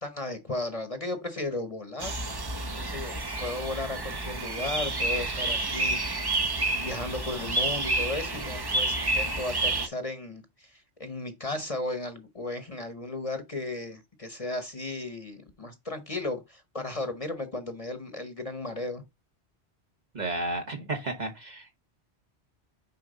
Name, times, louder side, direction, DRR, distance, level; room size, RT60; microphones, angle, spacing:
voice 1, 0.0-2.1 2.7-6.4 6.8-19.0, left 2 dB, 35° left, 1.0 m, -35 dB
sound 1, 2.0-9.9, right 2 dB, 25° right, 0.7 m, -29 dB
voice 2, 20.1-21.7, right 2 dB, 40° right, 1.4 m, -32 dB
6.5 x 4.7 x 3.9 m
omnidirectional pair, 1.1 m